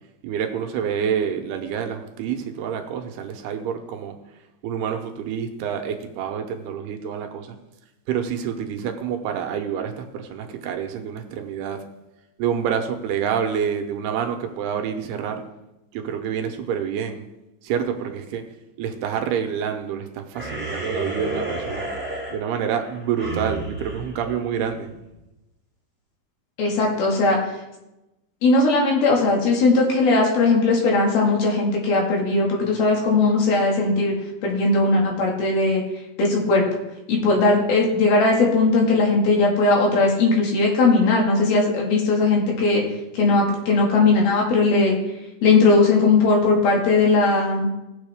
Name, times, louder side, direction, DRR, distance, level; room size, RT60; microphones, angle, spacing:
voice 1, 0.2-4.2 4.6-7.6 8.1-11.8 12.4-15.4 15.9-17.2 17.6-18.4 18.8-21.9 22.3-24.9, right 8 dB, 80° right, 5 dB, 2.8 m, -27 dB
sound 1, 20.3-25.1, right 2 dB, 5° right, 1.7 m, -31 dB
voice 2, 26.6-27.4 28.4-34.1 34.4-35.8 36.2-36.6 37.1-42.8 43.1-45.0 45.4-47.7, left 3 dB, 65° left, -1 dB, 3.8 m, -18 dB
17.5 x 7.2 x 3.5 m, 0.96 s
omnidirectional pair, 4.8 m